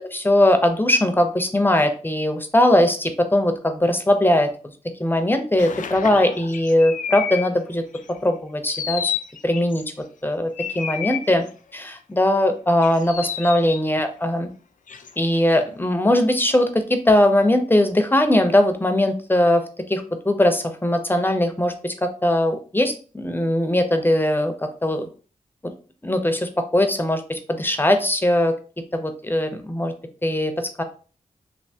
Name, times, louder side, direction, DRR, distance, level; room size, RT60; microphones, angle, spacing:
voice 1, 0.1-4.5 5.0-7.8 8.2-9.1 9.4-9.8 10.2-11.5 11.7-14.5 15.2-19.6 19.9-24.5 24.8-25.1 25.6-25.7 26.0-28.5 28.9-29.9 30.2-30.8, left 1 dB, 15° left, 7 dB, 0.6 m, -20 dB
sound 1, 5.6-7.4 7.9-8.2 8.7-9.8 10.6-11.5 12.8-13.8 14.9-15.4, left 8 dB, 75° left, 0.4 m, -30 dB
3.4 x 2.6 x 2.7 m, 0.39 s
cardioid pair, 55°, 14 cm